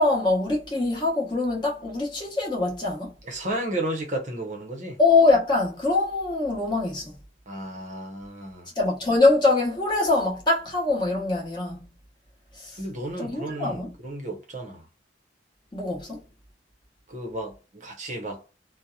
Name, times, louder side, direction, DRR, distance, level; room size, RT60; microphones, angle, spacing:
voice 1, 0.0-3.1 5.0-7.1 8.8-11.9 12.6-12.8 13.2-13.9 15.7-16.2, left 3 dB, 25° left, 0.9 m, -23 dB
voice 2, 3.2-5.0 7.5-8.7 12.8-14.9 17.1-18.4, right 1 dB, 40° right, 0.7 m, -33 dB
2.7 x 2.1 x 2.3 m
head